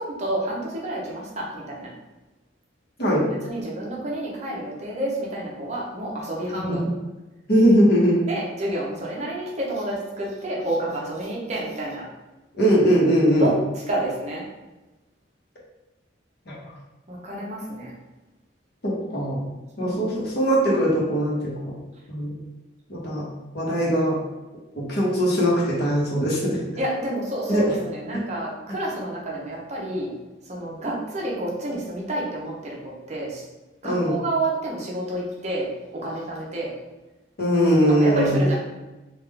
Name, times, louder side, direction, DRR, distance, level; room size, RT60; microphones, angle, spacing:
voice 1, 0.0-1.9 3.0-3.2 3.4-6.8 8.3-12.0 13.4-14.4 17.1-17.9 19.8-19.9 20.2-20.3 26.8-30.1 30.4-33.5 33.8-36.7 37.9-38.5, right 1 dB, 35° right, -4 dB, 0.7 m, -29 dB
voice 2, 3.0-3.3 6.5-6.8 7.5-8.2 12.5-13.5 16.5-16.6 18.8-19.5 19.8-21.7 22.1-22.4 22.9-23.2 23.5-24.2 24.8-26.6 27.5-27.6 33.8-34.1 37.4-38.4, equal, 55° left, -5 dB, 1.0 m, -20 dB
3.5 x 2.4 x 3.2 m, 1.1 s
head